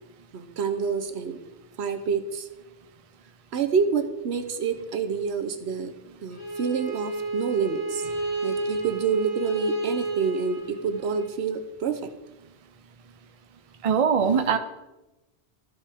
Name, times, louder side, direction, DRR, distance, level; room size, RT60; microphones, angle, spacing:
voice 1, 0.3-1.4 1.8-2.5 3.5-5.9 6.2-8.0 8.4-12.1, right 6 dB, 70° right, 8 dB, 1.0 m, -27 dB
Bowed string instrument, 6.3-11.3, right 2 dB, 45° left, 2.1 m, -31 dB
voice 2, 13.8-14.6, right 6 dB, 40° right, 7 dB, 0.6 m, -21 dB
13.5 x 5.5 x 3.5 m, 1.0 s
omnidirectional pair, 1.1 m